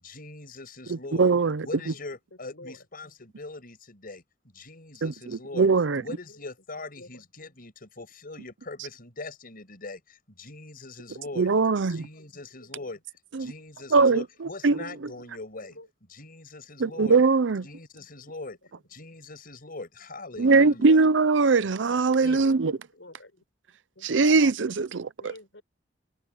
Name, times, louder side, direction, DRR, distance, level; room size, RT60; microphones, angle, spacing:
voice 1, 0.0-1.3 1.6-4.2 4.5-5.7 6.0-11.5 11.9-13.0 13.4-15.8 16.1-17.2 17.6-18.6 18.9-21.0 22.2-22.4, left 2 dB, 50° left, 6.1 m, -41 dB
voice 2, 0.9-1.7 5.0-5.1 5.6-6.0 11.4-12.1 13.3-13.5 13.9-14.8 16.8-17.7 20.4-22.8 24.0-25.3, right 4 dB, 80° right, 0.6 m, -21 dB
voice 3, 12.6-12.9 15.4-15.5 15.7-15.9 22.1-23.4 24.0-24.3 25.2-25.6, left 2 dB, 80° left, 7.0 m, -49 dB
head